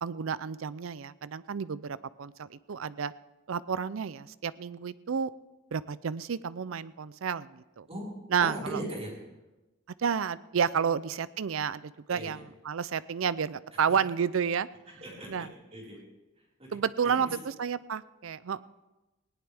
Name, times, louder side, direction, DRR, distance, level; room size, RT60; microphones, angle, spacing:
voice 1, 0.0-3.1 3.5-5.3 5.7-7.8 8.3-8.8 10.0-12.4 12.7-14.7 15.3-15.5 16.7-18.7, right 7 dB, 70° right, 17 dB, 0.5 m, -31 dB
voice 2, 8.4-9.2 10.7-10.9 12.1-12.4 13.9-14.0 14.9-16.0 16.6-16.7 17.0-17.4, right 1 dB, 30° right, -4 dB, 4.9 m, -39 dB
19.0 x 17.5 x 3.5 m, 1.1 s
head